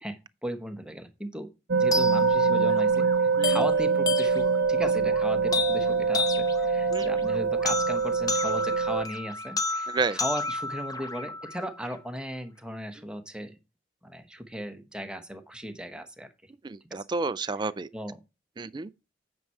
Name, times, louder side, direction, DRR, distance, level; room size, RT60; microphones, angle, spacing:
voice 1, 0.0-1.5 1.7-13.5 14.0-16.3 17.9-18.2, equal, 5° right, 1.1 m, -36 dB
sound 1, 1.7-9.0, right 5 dB, 75° right, 0.6 m, -24 dB
sound 2, 1.9-11.9, left 3 dB, 20° left, 0.9 m, -32 dB
voice 2, 16.6-17.9 18.6-18.9, right 4 dB, 25° right, 0.4 m, -30 dB
9.2 x 5.5 x 4.6 m
head